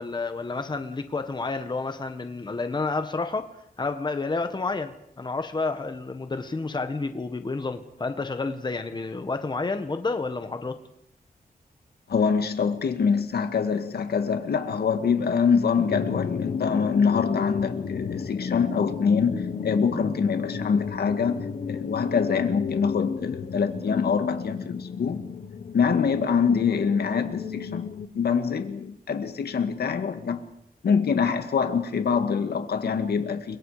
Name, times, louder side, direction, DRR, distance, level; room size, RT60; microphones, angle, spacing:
voice 1, 0.0-3.5 3.8-10.8, left 3 dB, 30° left, 1.6 m, -30 dB
voice 2, 12.1-25.2 25.7-27.9 28.1-30.5 30.8-33.6, left 6 dB, 90° left, 2.0 m, -25 dB
sound 1, 15.9-28.1, left 6 dB, 60° left, 1.3 m, -32 dB
30.0 x 23.5 x 5.1 m
wide cardioid pair, 155°, 16 cm